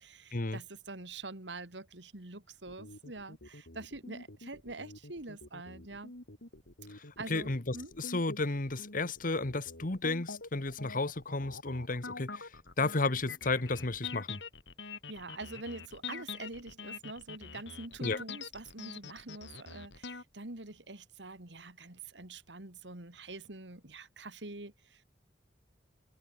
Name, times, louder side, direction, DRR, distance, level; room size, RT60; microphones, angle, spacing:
voice 1, 0.0-6.1 7.2-7.9 15.1-25.0, right 2 dB, 85° right, 2.9 m, -45 dB
sound 1, 2.7-20.2, left 4 dB, 85° left, 3.7 m, -45 dB
voice 2, 7.3-12.5 12.8-14.4 18.0-18.2, left 3 dB, 50° left, 1.5 m, -33 dB
open air
head